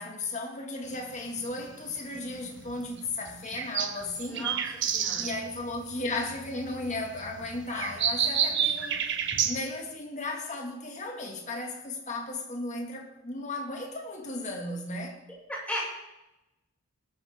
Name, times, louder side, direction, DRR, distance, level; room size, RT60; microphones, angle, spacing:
voice 1, 0.0-4.5 5.2-9.1 9.4-15.2, left 2 dB, 35° left, 2.2 m, -35 dB
sound 1, 0.9-9.6, right 8 dB, 55° right, 1.2 m, -31 dB
voice 2, 4.3-4.6 4.9-5.3 15.5-15.9, equal, 5° left, 6.0 m, -35 dB
19.5 x 13.0 x 3.7 m
head